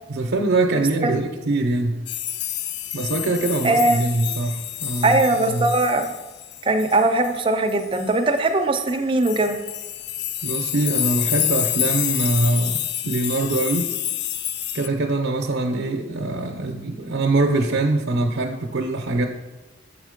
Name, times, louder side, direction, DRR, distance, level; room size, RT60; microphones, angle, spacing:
voice 1, 0.0-2.0 2.9-5.8 10.4-12.8 13.0-13.9 14.7-19.3, right 2 dB, 80° right, 3 dB, 0.6 m, -23 dB
sound 1, 2.1-8.2 8.9-9.0 9.2-14.9, left 11 dB, 60° left, 0.3 m, -28 dB
voice 2, 3.6-4.0 5.0-6.1 6.6-9.6, right 2 dB, 25° right, 6 dB, 0.5 m, -20 dB
7.0 x 3.7 x 5.0 m, 1.1 s
head